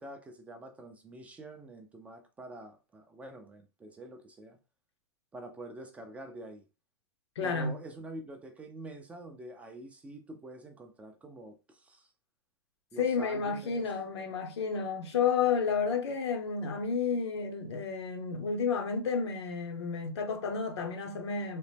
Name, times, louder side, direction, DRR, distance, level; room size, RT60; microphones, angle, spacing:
voice 1, 0.0-4.6 5.3-6.6 7.4-12.1 12.9-13.8, right 1 dB, 10° right, 0.3 m, -46 dB
voice 2, 7.4-7.8 13.0-21.6, left 5 dB, 80° left, 0.8 m, -31 dB
3.0 x 2.0 x 3.2 m
hypercardioid pair, 135°, 14 cm